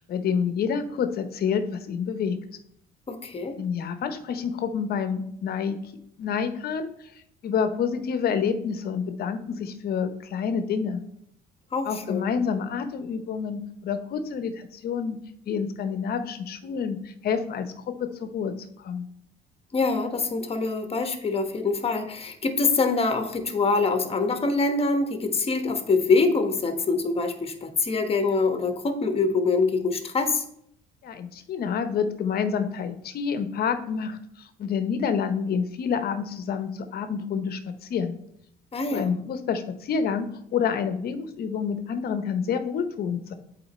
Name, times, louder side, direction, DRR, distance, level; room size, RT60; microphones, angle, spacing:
voice 1, 0.0-2.4 3.6-5.8 6.2-6.9 7.4-11.0 11.8-15.2 15.5-19.1 31.0-38.2 38.9-43.3, left 6 dB, 60° left, 9 dB, 0.9 m, -28 dB
voice 2, 3.1-3.6 11.7-12.3 19.7-30.4 38.7-39.1, left 3 dB, 30° left, 7 dB, 1.2 m, -24 dB
7.7 x 4.5 x 4.3 m, 0.71 s
supercardioid pair, 80°, 18 cm